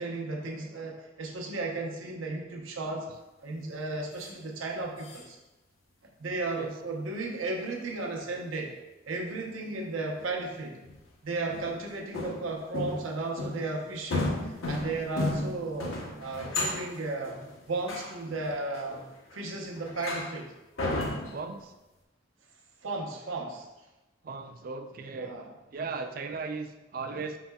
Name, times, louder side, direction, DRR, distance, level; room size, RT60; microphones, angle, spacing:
voice 1, 0.0-3.1 3.4-5.4 6.2-8.7 9.1-10.8 11.2-17.4 17.7-19.0 19.3-20.5 22.8-23.7 25.2-25.5 27.1-27.2, right 2 dB, 85° right, 0 dB, 0.7 m, -34 dB
sound 1, 4.2-4.3 5.0-5.2 7.9-8.0 10.1-10.3 10.8-11.0 11.5-11.8 12.1-13.1 13.4-13.7 14.1-19.4 19.8-20.4 20.8-21.4, left 2 dB, 85° left, 0.8 m, -34 dB
voice 2, 21.3-21.7 24.2-25.3 25.7-27.4, right 4 dB, 45° right, 6 dB, 0.3 m, -37 dB
5.5 x 4.0 x 2.2 m, 1.0 s
head